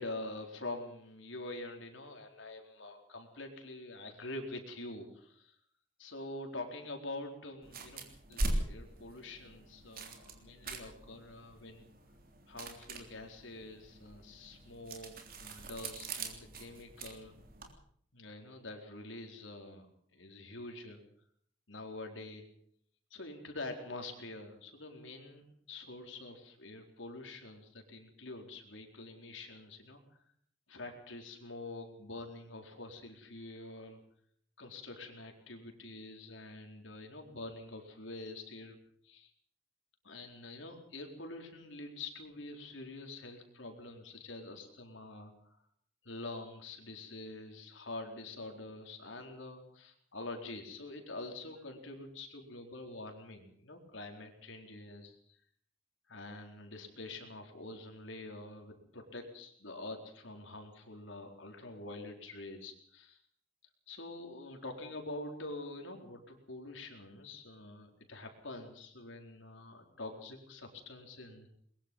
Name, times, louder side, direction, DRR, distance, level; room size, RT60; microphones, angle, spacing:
voice 1, 0.0-5.6 6.0-11.9 12.5-17.3 18.1-19.9 20.1-21.0 21.7-22.5 23.1-30.0 30.7-34.0 34.6-38.8 39.0-39.3 40.0-45.3 46.0-55.4 56.1-63.2 63.9-71.5, left 2 dB, 85° left, 3 dB, 4.3 m, -46 dB
sound 1, 7.6-17.7, right 2 dB, 50° right, 3.4 m, -42 dB
22.0 x 21.5 x 5.5 m, 0.62 s
head